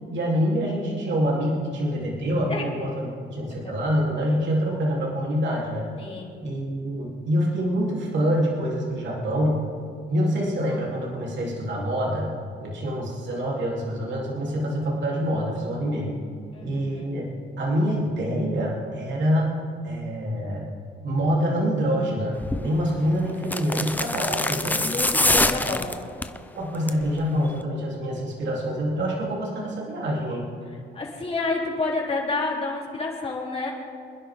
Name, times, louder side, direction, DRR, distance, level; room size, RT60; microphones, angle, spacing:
voice 1, 0.1-5.8 6.4-9.7 10.1-16.2 16.6-17.3 17.6-20.7 21.0-24.9 25.3-25.7 26.5-30.5, equal, 65° right, -4 dB, 3.8 m, -26 dB
voice 2, 6.0-6.3 16.5-17.1 24.8-26.0 30.9-33.7, left 3 dB, 30° left, -3 dB, 3.7 m, -29 dB
sound 1, 22.4-22.7 23.4-26.4 26.7-27.1 27.4-27.5, left 1 dB, 10° left, 0.8 m, -24 dB
25.5 x 10.5 x 3.9 m, 2.3 s
cardioid pair, 90°, 20 cm